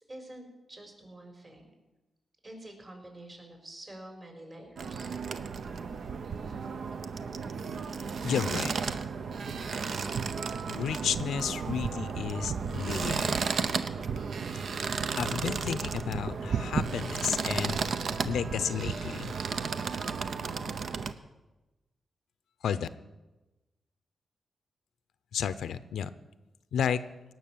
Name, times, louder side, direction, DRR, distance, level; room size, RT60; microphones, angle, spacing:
voice 1, 0.0-1.7 2.4-5.1, right 1 dB, 35° right, 2 dB, 4.4 m, -47 dB
sound 1, 4.8-21.1, right 5 dB, 65° right, 0.7 m, -33 dB
voice 2, 8.2-8.7 10.7-13.3 15.2-17.8 18.2-19.3 22.6-22.9 25.3-26.1 26.7-27.0, left 8 dB, 90° left, 14 dB, 0.6 m, -32 dB
18.0 x 6.3 x 8.6 m, 1.1 s
cardioid pair, 80°, 0 cm